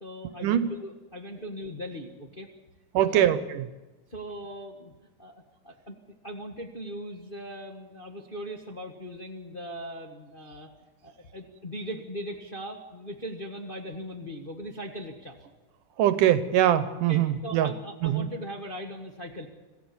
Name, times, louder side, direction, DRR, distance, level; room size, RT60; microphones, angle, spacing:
voice 1, 0.0-2.5 3.0-3.3 4.1-4.9 5.2-6.0 6.2-10.7 11.0-15.4 17.1-19.5, equal, 25° left, 2 dB, 1.2 m, -39 dB
voice 2, 2.9-3.6 16.0-17.7 18.0-18.3, right 11 dB, 75° right, 13 dB, 2.4 m, -23 dB
26.0 x 16.5 x 7.2 m, 1.1 s
omnidirectional pair, 3.8 m